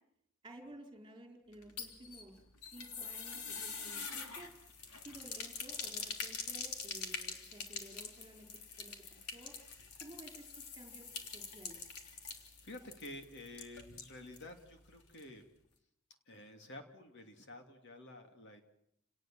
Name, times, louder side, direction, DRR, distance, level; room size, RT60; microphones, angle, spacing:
voice 1, 0.4-2.3 2.7-4.5 4.9-8.5 8.8-9.5 10.0-10.4 10.8-11.8, right 1 dB, 20° right, 3 dB, 4.8 m, -54 dB
sound 1, 1.5-14.5 14.8-14.9 15.2-15.3, left 5 dB, 90° left, 3.4 m, -45 dB
voice 2, 12.4-15.5 16.3-18.6, left 1 dB, 55° left, 5 dB, 2.8 m, -51 dB
29.5 x 19.0 x 7.7 m, 0.75 s
head